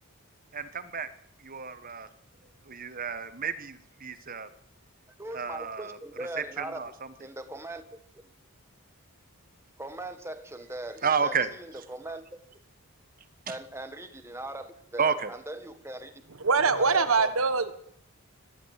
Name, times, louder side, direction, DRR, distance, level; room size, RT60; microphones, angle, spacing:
voice 1, 0.5-1.1 1.4-2.1 2.7-4.5 5.3-6.0 6.6-6.9 11.0-11.5 13.5-13.6 15.0-15.3, right 6 dB, 40° right, 12 dB, 1.5 m, -30 dB
voice 2, 5.2-6.8 7.2-8.0 9.8-12.3 13.5-16.2 16.5-17.3, right 1 dB, 10° right, 8 dB, 1.6 m, -40 dB
voice 3, 16.4-17.7, right 4 dB, 65° right, 11 dB, 1.4 m, -23 dB
22.0 x 14.0 x 8.3 m, 0.70 s
head